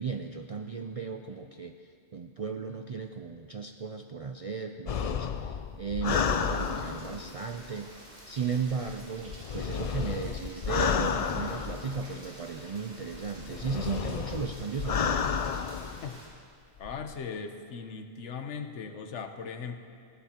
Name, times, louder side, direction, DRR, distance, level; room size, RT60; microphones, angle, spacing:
voice 1, 0.0-1.8 2.1-15.4, right 5 dB, 60° right, 5 dB, 0.3 m, -36 dB
sound 1, 4.9-7.4 8.6-12.3 13.1-16.1 16.8-17.1, left 7 dB, 60° left, 0.3 m, -31 dB
Rain, 6.1-16.2, right 1 dB, 80° right, 3.6 m, -50 dB
voice 2, 16.8-19.8, left 5 dB, 85° left, 6 dB, 1.2 m, -38 dB
19.5 x 15.0 x 2.9 m, 2.3 s
omnidirectional pair, 1.2 m